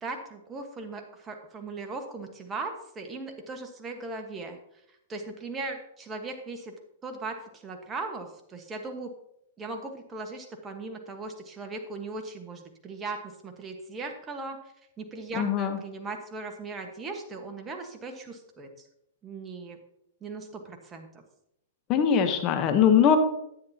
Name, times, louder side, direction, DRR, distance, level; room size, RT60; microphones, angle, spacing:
voice 1, 0.0-4.6 5.1-6.7 7.0-9.1 9.6-14.6 15.0-18.7 19.2-19.8 20.2-21.1, right 3 dB, 20° right, 4 dB, 1.3 m, -38 dB
voice 2, 15.3-15.8 21.9-23.2, left 8 dB, 35° left, 7 dB, 1.0 m, -21 dB
9.6 x 9.6 x 2.8 m, 0.77 s
hypercardioid pair, 120°, 0 cm